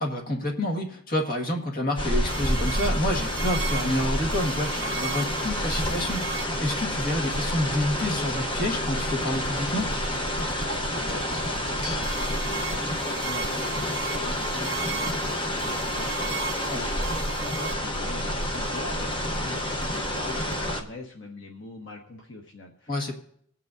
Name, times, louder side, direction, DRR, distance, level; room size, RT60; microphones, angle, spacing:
voice 1, 0.0-9.9 16.7-16.8 22.9-23.2, left 1 dB, 45° left, 2 dB, 1.6 m, -28 dB
sound 1, 2.0-20.8, left 1 dB, 25° left, 1.0 m, -29 dB
sound 2, 2.3-20.6, right 5 dB, 55° right, 0.9 m, -37 dB
sound 3, 7.7-15.7, left 4 dB, 85° left, 2.1 m, -50 dB
voice 2, 10.9-23.2, left 2 dB, 65° left, 1 dB, 1.2 m, -42 dB
23.0 x 8.7 x 2.6 m, 0.65 s
head